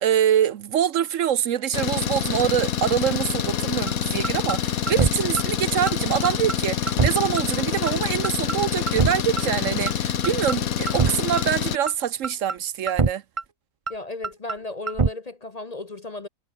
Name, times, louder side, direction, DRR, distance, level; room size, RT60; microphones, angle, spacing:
voice 1, 0.0-13.2, right 10 dB, 65° right, 1.1 m, -25 dB
Engine, 1.7-11.8, left 8 dB, 80° left, 1.6 m, -26 dB
sound 1, 3.9-4.0 4.2-4.6 4.9-5.1 5.4-5.5 5.9-6.0 6.2-6.6 6.9-7.1 7.4-7.5 7.9-8.0 8.2-8.6 8.9-9.1 9.4-9.5 9.9-10.0 10.2-10.6 10.9-11.1 11.4-11.5 11.9-12.0 12.2-12.6 12.9-13.1 13.4-13.5 13.9-14.0 14.2-14.6 14.9-15.1, right 4 dB, 25° right, 0.8 m, -23 dB
voice 2, 13.9-16.3, left 2 dB, 35° left, 0.8 m, -35 dB
omnidirectional pair, 1.5 m